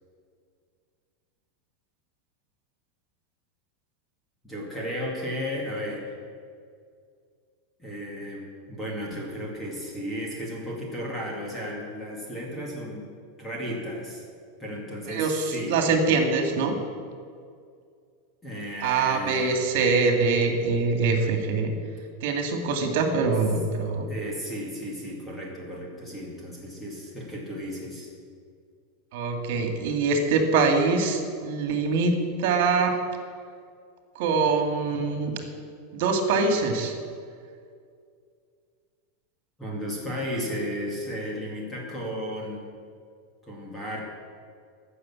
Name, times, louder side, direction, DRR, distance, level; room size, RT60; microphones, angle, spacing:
voice 1, 4.4-6.1 7.8-13.0 13.4-14.2 14.6-15.8 18.4-19.6 24.1-28.1 39.6-42.6 43.4-44.0, equal, 10° left, -3 dB, 2.3 m, -34 dB
voice 2, 15.1-16.8 18.8-21.7 22.2-24.1 29.1-32.9 34.2-35.3 35.9-36.9, right 4 dB, 60° right, 5 dB, 2.0 m, -24 dB
14.5 x 6.7 x 8.6 m, 2.2 s
supercardioid pair, 165°, 0 cm